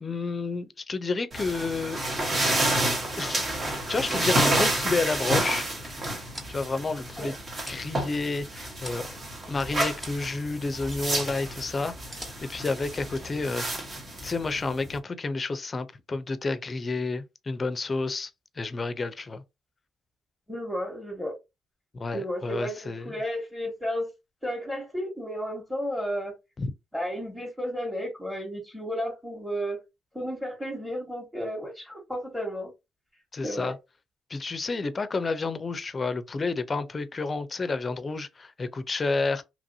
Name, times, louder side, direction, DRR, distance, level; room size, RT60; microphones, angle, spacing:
voice 1, 0.0-2.0 3.2-3.4 3.7-5.7 6.5-7.4 7.7-9.1 9.5-13.7 14.2-18.3 18.6-19.4 21.9-23.2 26.6-26.7 33.3-33.8 34.3-39.4, left 3 dB, 30° left, 0.5 m, -30 dB
sound 1, 1.3-15.0, right 1 dB, 40° right, 1.2 m, -30 dB
sound 2, 6.3-6.6 7.2-7.8 8.3-9.1 9.4-9.6 10.0-10.2 10.5-11.3 11.8-12.6 13.1-13.3, equal, 15° right, 1.2 m, -44 dB
voice 2, 20.5-21.3 22.1-24.1 24.4-26.3 26.9-29.8 30.1-32.7 33.4-33.7, equal, ahead, 1.2 m, -33 dB
2.9 x 2.6 x 2.7 m
cardioid pair, 90°, 0 cm